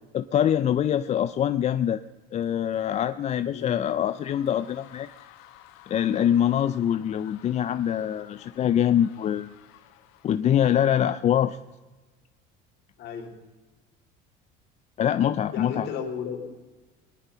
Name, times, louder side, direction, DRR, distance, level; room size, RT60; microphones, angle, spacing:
voice 1, 0.1-2.0 2.3-5.1 5.9-9.5 10.2-11.6 15.0-15.9, left 10 dB, 35° left, 11 dB, 0.5 m, -24 dB
sound 1, 2.4-10.7, left 13 dB, 75° left, 1.6 m, -54 dB
voice 2, 13.0-13.4 15.5-16.7, left 6 dB, 55° left, 2 dB, 3.6 m, -34 dB
22.5 x 10.5 x 5.6 m, 1.2 s
cardioid pair, 130°, 21 cm